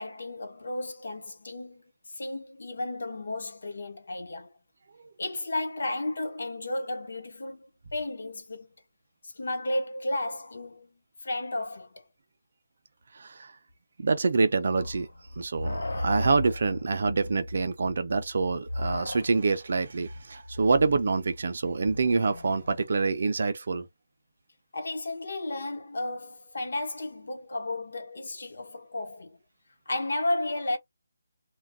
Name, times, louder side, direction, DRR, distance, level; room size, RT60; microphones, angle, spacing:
voice 1, 0.0-1.8 2.2-4.5 5.2-8.7 9.2-12.1 24.7-29.4 29.9-30.8, left 2 dB, 55° left, 0.9 m, -33 dB
voice 2, 13.1-13.5 14.0-15.1 15.4-23.9, right 4 dB, 40° right, 0.4 m, -26 dB
sound 1, 14.7-22.9, left 1 dB, 85° left, 0.8 m, -36 dB
2.3 x 2.2 x 3.5 m
hypercardioid pair, 180°, 0 cm